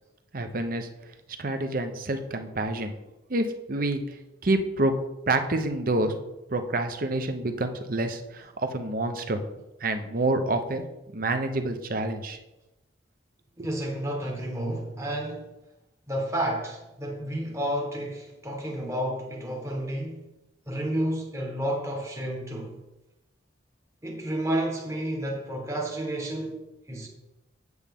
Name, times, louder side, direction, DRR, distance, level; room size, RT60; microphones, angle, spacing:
voice 1, 0.3-0.9 1.4-2.9 3.3-4.0 4.4-4.9 5.3-6.1 6.5-9.4 9.8-10.8 11.1-12.4 13.6-13.7, right 2 dB, 50° right, 0.8 m, -27 dB
voice 2, 13.6-15.5 16.1-20.2 20.7-22.8 24.0-27.1, right 1 dB, 15° right, 1.1 m, -31 dB
8.4 x 8.0 x 3.6 m
head